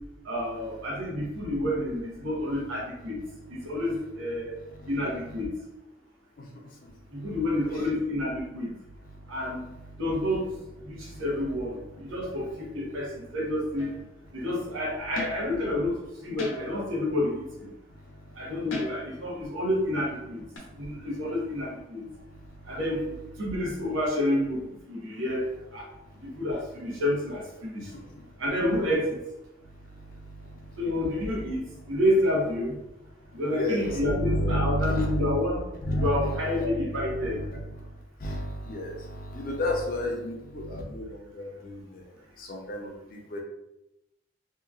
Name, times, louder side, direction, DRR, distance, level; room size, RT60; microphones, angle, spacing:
voice 1, 0.3-3.2 3.6-4.6 4.9-5.5 7.1-8.7 9.3-9.6 10.0-10.5 10.9-11.8 12.1-12.5 12.7-13.9 14.3-16.0 16.2-17.7 18.4-20.4 20.8-22.0 22.7-23.0 23.4-25.8 26.4-27.8 28.4-29.1 30.8-32.8 33.3-35.7 35.9-37.4, left 1 dB, 85° right, -3 dB, 0.9 m, -29 dB
voice 2, 6.4-6.9 7.2-7.4 9.0-10.1 10.9-11.2 11.8-12.2 12.6-12.7 14.3-14.5 17.9-18.5 20.6-21.1 21.5-21.6 22.2-22.8 26.0-26.4 27.8-28.3 29.6-30.8 31.8-31.9 33.3-35.4 35.8-43.4, equal, 45° left, 1 dB, 0.5 m, -33 dB
sound 1, 13.8-14.1 15.2-15.5 16.4-16.9 18.7-19.2 20.6-20.7, left 2 dB, 85° left, 0.7 m, -38 dB
2.9 x 2.3 x 2.3 m, 0.88 s
head